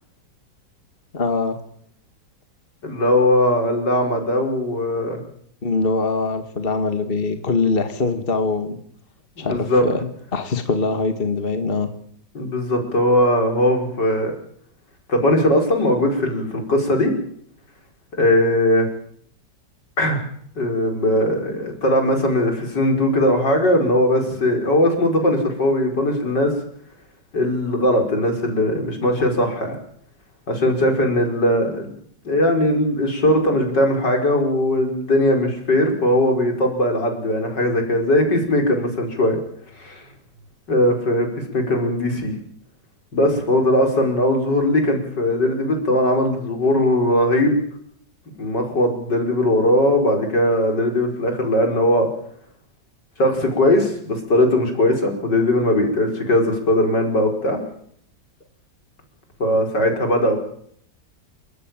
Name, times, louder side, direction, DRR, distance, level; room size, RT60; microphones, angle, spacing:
voice 1, 1.1-1.6 5.6-8.8 9.4-10.0 10.3-11.9, left 4 dB, 30° left, 8 dB, 1.9 m, -22 dB
voice 2, 2.8-5.2 9.4-9.8 12.4-14.3 15.1-17.1 18.2-18.9 20.0-20.2 20.6-26.5 27.3-29.8 30.5-31.9 32.2-39.4 39.8-40.0 40.7-41.3 41.5-42.3 43.1-47.6 48.4-52.1 53.2-57.6 59.4-60.4, left 1 dB, 75° left, 3 dB, 5.6 m, -19 dB
28.0 x 15.0 x 9.0 m, 0.65 s
omnidirectional pair, 1.9 m